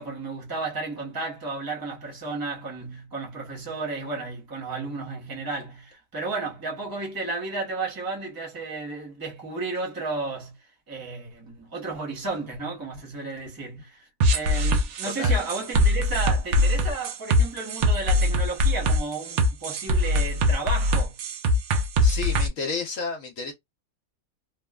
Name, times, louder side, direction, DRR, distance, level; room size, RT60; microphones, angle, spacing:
voice 1, 0.0-10.6 10.9-21.2, right 3 dB, 15° right, 0.8 m, -33 dB
sound 1, 14.2-22.5, left 1 dB, 65° right, 0.7 m, -22 dB
voice 2, 22.0-23.5, left 4 dB, 60° left, 1.1 m, -31 dB
3.0 x 2.0 x 2.3 m
omnidirectional pair, 1.6 m